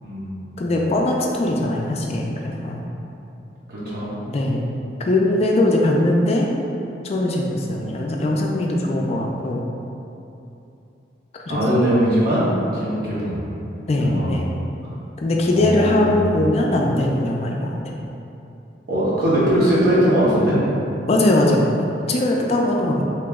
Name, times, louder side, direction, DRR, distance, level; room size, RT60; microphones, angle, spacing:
voice 1, 0.0-0.6 3.7-4.1 11.5-13.4 13.9-14.3 15.5-16.1 18.9-20.6, equal, 60° right, -9 dB, 1.1 m, -20 dB
voice 2, 0.6-2.8 4.3-4.7 5.0-6.5 7.0-9.7 11.5-11.6 13.9-14.5 15.2-17.8 21.1-23.0, left 1 dB, 35° left, -1 dB, 0.3 m, -20 dB
2.9 x 2.9 x 3.5 m, 2.8 s
head